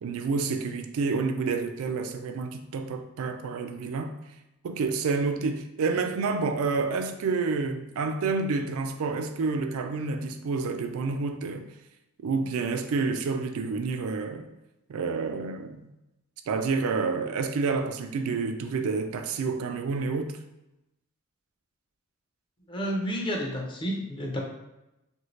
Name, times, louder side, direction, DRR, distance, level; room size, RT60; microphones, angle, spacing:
voice 1, 0.0-4.1 4.6-11.7 12.2-14.5 14.9-15.9 16.5-20.4, right 4 dB, 70° right, 0.3 m, -29 dB
voice 2, 22.7-24.4, equal, 25° left, 0.5 m, -30 dB
2.8 x 2.5 x 3.1 m
head